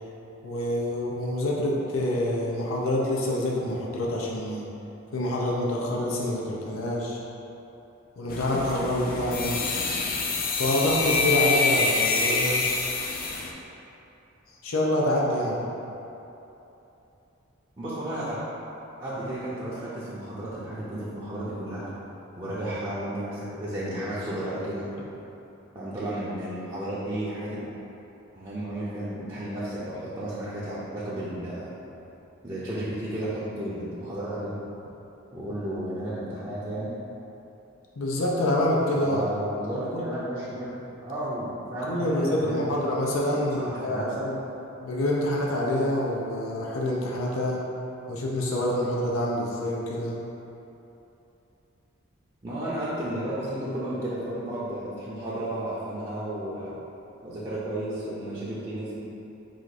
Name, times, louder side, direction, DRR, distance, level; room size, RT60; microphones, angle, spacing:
voice 1, 0.4-4.6 5.1-7.2 8.2-9.6 10.5-12.7 14.6-15.6 38.0-39.2 39.7-40.0 41.8-44.3 44.8-47.6 48.1-50.2, left 1 dB, 90° left, -3 dB, 0.6 m, -26 dB
sound 1, 8.3-13.5, left 4 dB, 45° left, 0.4 m, -26 dB
voice 2, 17.8-18.4 19.0-21.9 22.4-24.8 25.7-27.7 28.3-31.7 32.4-34.5 35.3-36.9 38.9-40.7 41.0-42.8 43.3-44.2 52.4-56.7 57.2-59.0, right 1 dB, 20° right, -12 dB, 0.6 m, -33 dB
3.9 x 2.5 x 4.7 m, 3.0 s
head